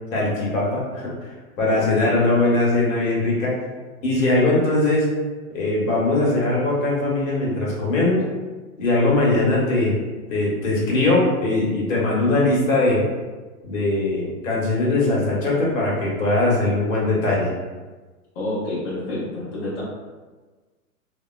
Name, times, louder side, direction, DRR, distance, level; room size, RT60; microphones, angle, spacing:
voice 1, 0.1-1.1 1.6-3.5 4.0-5.1 5.5-8.2 8.8-10.0 10.3-13.0 13.6-17.5, left 2 dB, 60° left, -5 dB, 1.1 m, -20 dB
voice 2, 18.3-19.8, left 1 dB, 40° left, -9 dB, 0.8 m, -29 dB
2.7 x 2.2 x 2.2 m, 1.3 s
hypercardioid pair, 125°, 46 cm